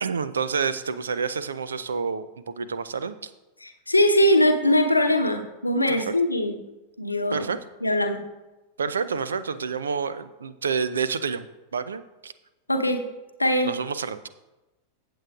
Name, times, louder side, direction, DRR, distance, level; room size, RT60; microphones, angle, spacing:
voice 1, 0.0-3.3 5.9-6.1 7.3-7.6 8.8-11.5 11.7-12.3 13.6-14.3, right 5 dB, 70° right, 14 dB, 0.4 m, -28 dB
voice 2, 3.6-6.5 7.0-7.5 7.8-8.2 12.7-13.0 13.4-13.7, left 1 dB, 85° left, 5 dB, 0.9 m, -21 dB
15.0 x 7.8 x 2.4 m, 1.1 s
figure-of-eight pair, 90°, 0 cm